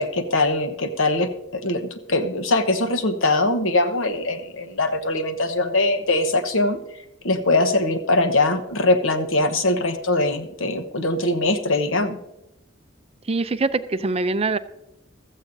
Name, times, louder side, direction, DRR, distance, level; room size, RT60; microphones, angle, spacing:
voice 1, 0.0-6.8 7.2-12.2, left 2 dB, 70° left, 8 dB, 1.1 m, -22 dB
voice 2, 13.3-14.6, right 3 dB, 30° right, 12 dB, 0.5 m, -23 dB
15.5 x 13.5 x 2.7 m, 0.91 s
head